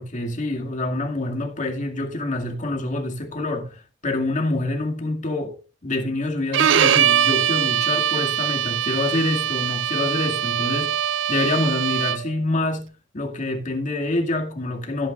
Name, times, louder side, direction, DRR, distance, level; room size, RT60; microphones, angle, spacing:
voice 1, 0.0-5.6 5.8-15.1, left 2 dB, 40° left, 2.2 m, -26 dB
Bowed string instrument, 6.5-12.4, right 9 dB, 70° right, 0.4 m, -22 dB
16.0 x 8.8 x 2.4 m
head